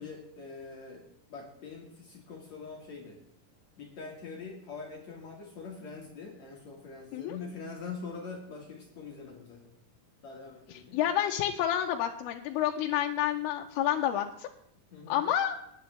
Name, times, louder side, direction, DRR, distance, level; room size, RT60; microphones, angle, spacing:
voice 1, 0.0-3.2 3.8-9.7 10.2-11.0 14.9-15.3, left 4 dB, 55° left, -1 dB, 2.5 m, -44 dB
voice 2, 10.9-14.5 15.1-15.6, left 11 dB, 90° left, 2 dB, 2.6 m, -29 dB
18.5 x 10.5 x 3.3 m, 0.76 s
omnidirectional pair, 4.4 m